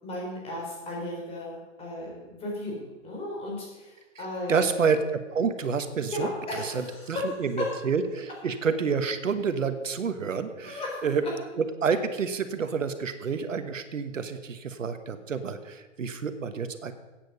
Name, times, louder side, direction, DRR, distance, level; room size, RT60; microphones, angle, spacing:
voice 1, 0.0-4.8 6.1-7.3 7.6-7.7 10.6-11.1, left 2 dB, 15° left, -2 dB, 4.0 m, -35 dB
voice 2, 4.5-6.3 6.6-11.2 11.6-16.9, right 5 dB, 90° right, 10 dB, 1.3 m, -29 dB
15.5 x 9.0 x 5.4 m, 1.2 s
hypercardioid pair, 145°, 38 cm